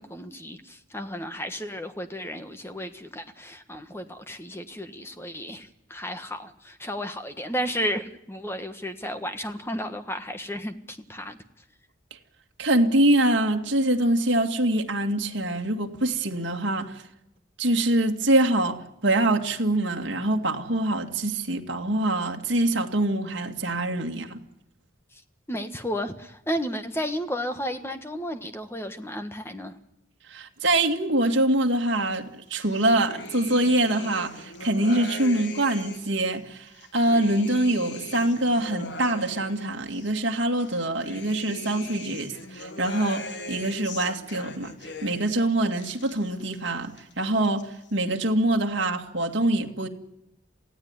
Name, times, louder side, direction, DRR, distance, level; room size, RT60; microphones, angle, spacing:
voice 1, 0.0-11.4 25.1-25.2 25.5-29.8, equal, 10° left, 1.5 m, -33 dB
voice 2, 12.6-17.0 17.6-24.4 30.3-44.8 45.0-49.9, right 1 dB, 60° right, 2.3 m, -24 dB
sound 1, 32.6-36.2 36.7-40.1 40.6-45.4 45.7-46.6 46.8-47.6, left 2 dB, 60° left, 1.6 m, -40 dB
27.5 x 17.0 x 9.7 m
head